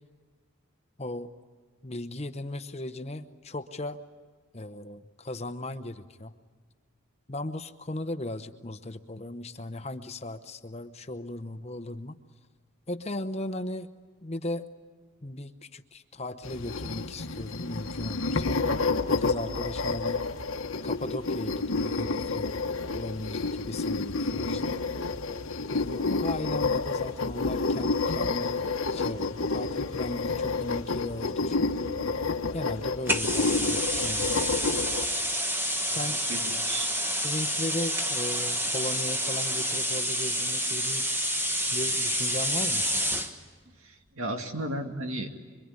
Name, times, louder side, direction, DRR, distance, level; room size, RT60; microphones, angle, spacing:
voice 1, 1.0-1.3 1.8-4.0 4.5-6.4 7.3-12.2 12.9-13.9 14.2-14.7 15.2-18.6 19.1-20.3 20.8-22.6 22.9-24.8 25.7-31.8 32.5-34.3 35.8-36.2 37.2-41.1 41.7-42.9, left 1 dB, 30° left, 9 dB, 0.8 m, -37 dB
sound 1, 16.4-35.1, left 3 dB, 70° left, 1.2 m, -29 dB
sound 2, 33.1-43.3, equal, 10° right, 1.2 m, -28 dB
voice 2, 36.3-36.9 43.8-45.4, right 1 dB, 70° right, 4 dB, 2.3 m, -35 dB
26.0 x 23.5 x 9.8 m, 1.4 s
head